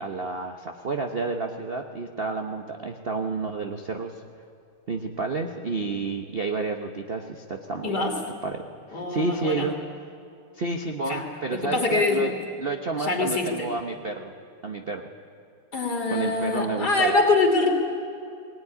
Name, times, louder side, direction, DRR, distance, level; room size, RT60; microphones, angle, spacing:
voice 1, 0.0-4.2 4.9-8.1 8.4-8.6 8.9-9.7 10.5-12.3 12.6-14.3 14.6-15.1 16.1-17.1, right 3 dB, 40° right, 4 dB, 0.9 m, -30 dB
voice 2, 7.8-8.2 8.9-9.7 11.1-12.4 13.0-13.7 15.7-17.7, left 3 dB, 50° left, 2 dB, 3.5 m, -24 dB
20.5 x 18.5 x 9.8 m, 2.5 s
omnidirectional pair, 2.3 m